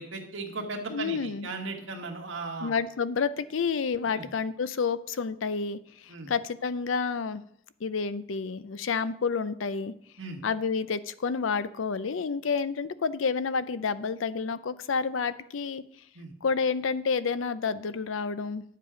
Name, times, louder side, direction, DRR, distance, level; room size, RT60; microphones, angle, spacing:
voice 1, 0.0-2.7 4.1-4.3 6.1-6.3 10.2-10.4 16.2-16.3, right 3 dB, 80° right, 2 dB, 1.7 m, -37 dB
voice 2, 0.9-1.5 2.6-7.4 7.8-9.9 10.4-15.8 16.4-18.6, left 5 dB, 90° left, 15 dB, 0.5 m, -29 dB
9.9 x 7.5 x 5.0 m, 0.70 s
head